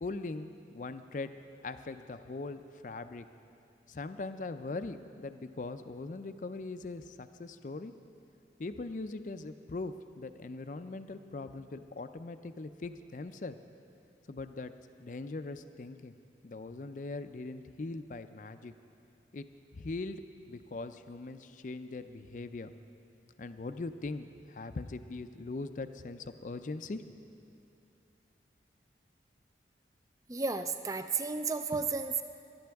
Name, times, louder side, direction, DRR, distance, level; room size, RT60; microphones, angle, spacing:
voice 1, 0.0-1.3 1.6-3.3 3.9-7.9 8.6-13.6 14.3-14.7 15.0-16.1 16.4-18.7 19.3-19.5 19.7-20.2 20.5-22.7 23.4-27.0, left 3 dB, 45° left, 10 dB, 0.4 m, -41 dB
voice 2, 30.3-32.2, right 4 dB, 20° right, 9 dB, 0.4 m, -33 dB
19.5 x 11.5 x 3.5 m, 2.8 s
head